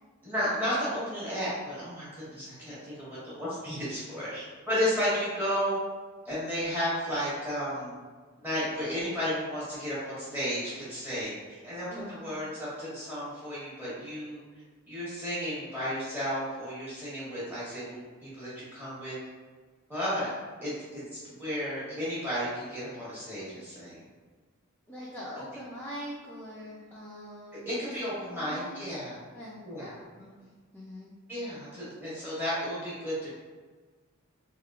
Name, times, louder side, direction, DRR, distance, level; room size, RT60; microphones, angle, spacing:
voice 1, 0.2-5.8 6.2-8.0 8.4-14.4 14.9-19.2 19.9-20.3 20.6-24.0 27.6-29.2 29.6-30.3 31.3-33.3, equal, 10° right, -10 dB, 1.1 m, -33 dB
voice 2, 11.9-12.3 24.9-27.9 28.3-28.8 29.3-30.3 30.7-31.1, equal, 10° left, -8 dB, 0.3 m, -43 dB
3.5 x 2.3 x 2.3 m, 1.4 s
head